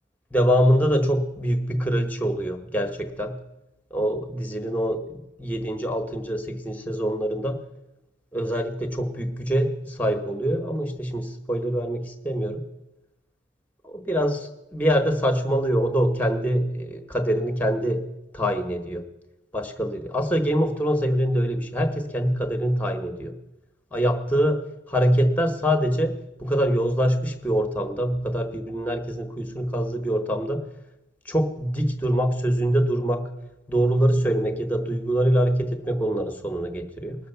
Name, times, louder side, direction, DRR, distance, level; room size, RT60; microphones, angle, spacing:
voice 1, 0.3-3.3 3.9-5.0 5.4-7.6 8.3-12.6 13.8-18.0 18.3-19.0 19.5-23.3 23.9-24.6 24.9-26.1 26.4-30.6 31.3-33.3 33.7-37.2, equal, 10° left, 7 dB, 1.1 m, -24 dB
19.5 x 6.6 x 6.9 m, 0.91 s
head